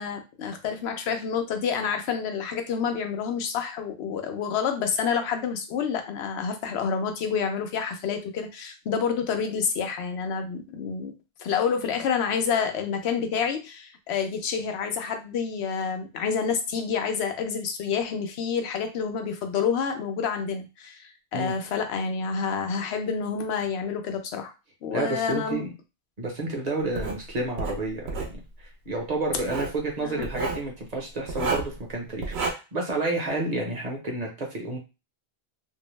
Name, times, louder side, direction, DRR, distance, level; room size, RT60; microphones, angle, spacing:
voice 1, 0.0-11.1 11.4-24.5 24.8-25.6 30.0-30.3, left 6 dB, 85° left, 6 dB, 0.8 m, -28 dB
voice 2, 24.9-25.7 26.2-34.8, right 2 dB, 45° right, 0 dB, 0.7 m, -30 dB
Writing, 27.0-27.2 27.6-28.4 29.3-29.8 30.2-30.6 31.3-31.8 32.2-32.5, right 4 dB, 80° right, 0.9 m, -30 dB
2.6 x 2.0 x 3.0 m, 0.28 s
omnidirectional pair, 1.1 m